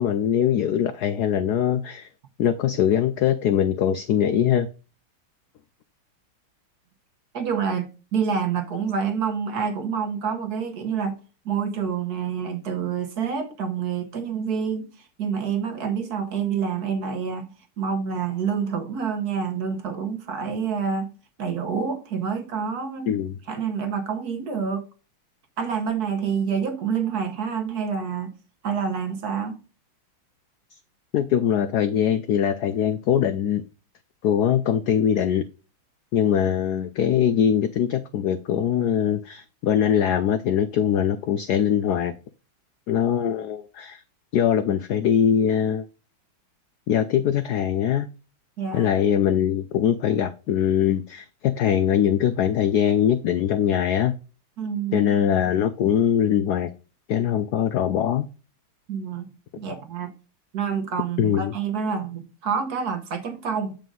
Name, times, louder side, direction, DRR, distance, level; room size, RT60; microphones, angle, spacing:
voice 1, 0.0-2.1 2.4-4.7 23.1-23.3 31.1-33.6 34.2-35.4 36.1-42.1 42.9-44.0 44.3-45.8 46.9-48.1 48.7-54.1 54.9-56.7 57.1-58.3 61.2-61.5, left 9 dB, 85° left, 0.8 m, -22 dB
voice 2, 7.3-11.2 11.4-17.5 17.8-21.1 21.4-23.2 23.5-24.8 25.6-28.3 28.6-29.6 48.6-48.9 54.6-55.1 58.9-59.3 59.6-60.1 60.5-63.8, right 6 dB, 55° right, 1.3 m, -27 dB
7.6 x 5.1 x 3.7 m
omnidirectional pair, 2.3 m